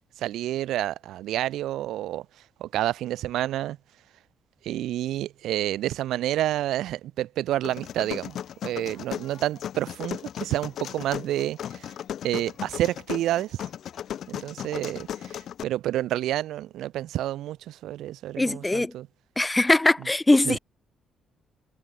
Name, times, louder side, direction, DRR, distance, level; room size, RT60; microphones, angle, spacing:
voice 1, 0.2-2.3 2.6-3.8 4.6-11.9 12.2-13.6 14.3-19.1 20.5-20.6, right 13 dB, 85° right, 0.5 m, -29 dB
sound 1, 7.6-15.6, left 10 dB, 65° left, 1.4 m, -36 dB
voice 2, 18.4-18.9 19.4-20.6, left 2 dB, 15° left, 0.4 m, -21 dB
cardioid pair, 90°, 0 cm